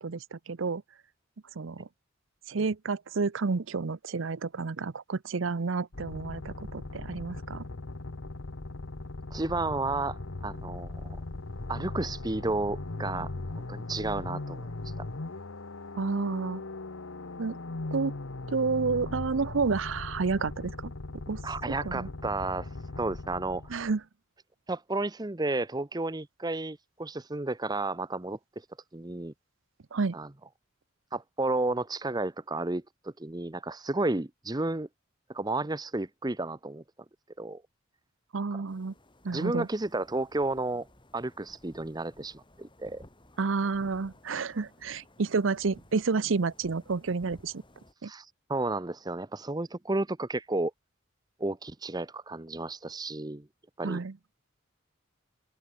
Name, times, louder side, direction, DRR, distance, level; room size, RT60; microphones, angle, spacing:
voice 1, 0.0-0.8 1.6-1.9 2.5-7.6 16.0-16.6 17.4-17.6 17.9-18.1 18.5-20.9 21.3-21.4 21.8-22.1 23.7-24.0 29.9-30.2 38.3-38.9 39.2-39.7 43.4-47.6 48.0-48.1 53.8-54.1, right 4 dB, 70° right, 0.7 m, -30 dB
sound 1, 5.9-24.0, left 2 dB, 80° left, 1.2 m, -39 dB
voice 2, 9.3-10.2 10.4-11.2 11.7-14.7 15.0-15.1 21.4-22.7 23.0-23.8 24.7-28.4 28.9-29.3 30.1-30.3 31.1-34.9 35.3-36.8 37.4-37.6 39.3-40.9 41.1-43.0 48.0-50.7 51.4-53.5 53.8-54.0, right 2 dB, 20° right, 0.8 m, -32 dB
sound 2, 38.7-47.9, left 1 dB, 25° left, 7.7 m, -57 dB
head